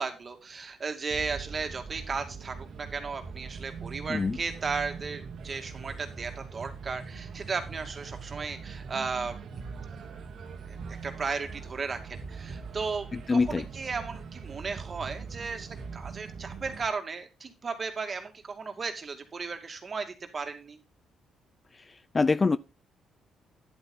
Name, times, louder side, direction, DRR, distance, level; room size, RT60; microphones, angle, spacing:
voice 1, 0.0-9.3 10.6-20.8, right 4 dB, 40° right, 2.3 m, -35 dB
sound 1, 1.1-16.9, right 5 dB, 65° right, 1.7 m, -42 dB
voice 2, 13.1-13.6 22.1-22.6, left 4 dB, 30° left, 0.4 m, -24 dB
10.5 x 8.2 x 3.9 m
cardioid pair, 90°, 0 cm